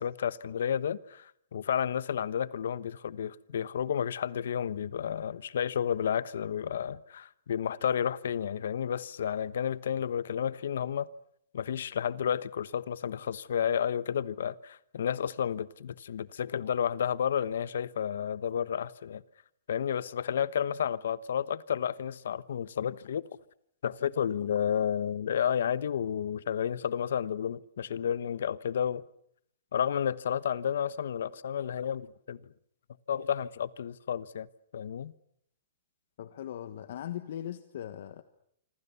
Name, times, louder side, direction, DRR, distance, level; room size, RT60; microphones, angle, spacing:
voice 1, 0.0-11.1 11.5-19.2 19.7-23.2 23.8-29.0 29.7-32.4 33.1-34.5 34.7-35.1, left 8 dB, 70° left, 1.1 m, -31 dB
voice 2, 36.2-38.2, left 11 dB, 55° left, 1.4 m, -39 dB
26.5 x 26.5 x 7.1 m
hypercardioid pair, 175°, 0 cm